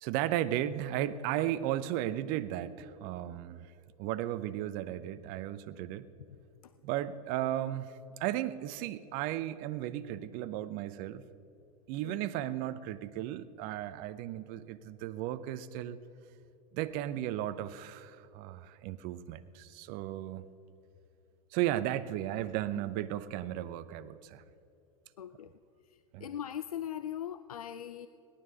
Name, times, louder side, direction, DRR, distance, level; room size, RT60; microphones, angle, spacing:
voice 1, 0.0-3.7 4.0-6.1 6.8-7.9 8.2-11.2 11.9-16.0 16.7-20.5 21.5-24.4 26.1-26.3, right 13 dB, 50° right, 14 dB, 0.8 m, -35 dB
voice 2, 25.2-25.6 25.9-28.1, left 10 dB, 85° left, 13 dB, 0.5 m, -40 dB
18.0 x 11.5 x 5.2 m, 2.8 s
hypercardioid pair, 90°, 18 cm